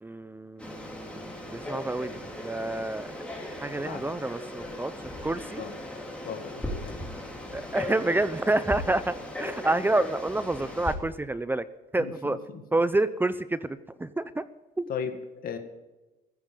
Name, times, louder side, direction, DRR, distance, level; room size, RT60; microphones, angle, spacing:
voice 1, 0.0-3.1 3.6-4.9 5.2-5.6 7.5-11.6 11.9-12.4 12.7-14.4 14.8-14.9, right 2 dB, 10° right, 14 dB, 0.7 m, -28 dB
Frog, 0.6-10.9, left 1 dB, 5° left, 3.6 m, -38 dB
voice 2, 6.2-7.0 12.0-12.6 14.9-15.2 15.4-15.6, left 7 dB, 60° left, 6 dB, 2.0 m, -36 dB
15.5 x 14.0 x 5.4 m, 1.1 s
cardioid pair, 110°, 17 cm